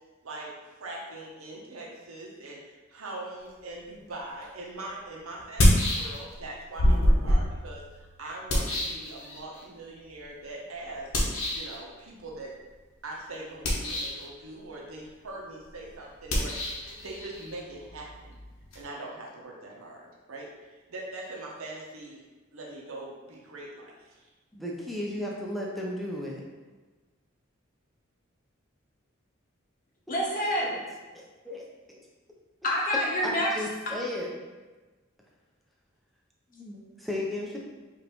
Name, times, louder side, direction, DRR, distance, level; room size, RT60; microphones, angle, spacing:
voice 1, 0.2-0.5 0.8-7.8 8.2-11.1 11.5-12.5 13.0-18.4 18.7-22.2 22.5-24.3, right 2 dB, 85° right, -2 dB, 0.9 m, -42 dB
sound 1, 4.4-4.5 5.4-6.4 6.8-9.6 11.1-11.8 13.5-14.3 16.2-18.8, left 1 dB, 90° left, 0.9 m, -26 dB
voice 2, 24.5-26.4 30.1-30.2 31.1-31.6 33.2-34.3 36.5-37.6, left 1 dB, ahead, -3 dB, 0.4 m, -34 dB
voice 3, 30.1-30.8 32.6-33.5 36.7-37.1, left 1 dB, 40° left, -2 dB, 0.7 m, -28 dB
4.9 x 2.6 x 3.0 m, 1.2 s
head